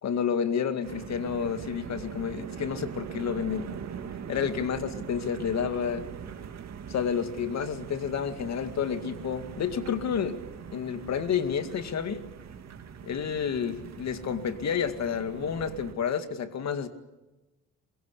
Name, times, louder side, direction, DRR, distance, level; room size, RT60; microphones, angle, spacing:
voice 1, 0.0-3.7 4.3-6.1 6.9-10.4 10.7-12.2 13.0-16.9, left 7 dB, 60° left, 9 dB, 2.2 m, -30 dB
sound 1, 0.8-15.9, right 7 dB, 60° right, 2.6 m, -41 dB
23.0 x 22.5 x 8.5 m, 1.1 s
cardioid pair, 90°, 30 cm